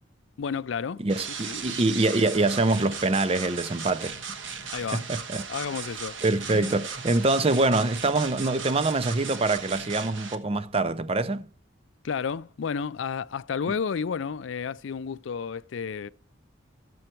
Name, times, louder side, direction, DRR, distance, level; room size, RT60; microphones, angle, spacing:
voice 1, 0.4-1.0 1.4-1.6 4.7-5.1 5.5-6.2 6.5-6.8 12.0-16.1, left 6 dB, 80° left, 0.4 m, -31 dB
voice 2, 1.0-4.2 4.9-5.4 6.2-11.5, right 2 dB, 30° right, 0.5 m, -25 dB
sound 1, 1.1-10.3, right 6 dB, 80° right, 1.4 m, -37 dB
14.0 x 7.8 x 4.5 m
head